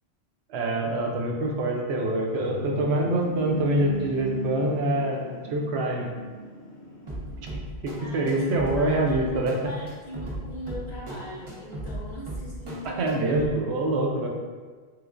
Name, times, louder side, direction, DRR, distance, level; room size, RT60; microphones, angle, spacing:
voice 1, 0.5-5.2 5.5-6.1 7.8-9.5 12.8-14.3, right 1 dB, 85° right, 0 dB, 0.9 m, -25 dB
sound 1, 2.0-7.5, right 1 dB, 80° left, 0.8 m, -36 dB
sound 2, 7.1-13.5, right 1 dB, 35° right, 0.6 m, -37 dB
voice 2, 8.0-13.5, equal, 50° left, -4 dB, 0.6 m, -40 dB
3.2 x 3.1 x 2.4 m, 1.5 s
omnidirectional pair, 1.1 m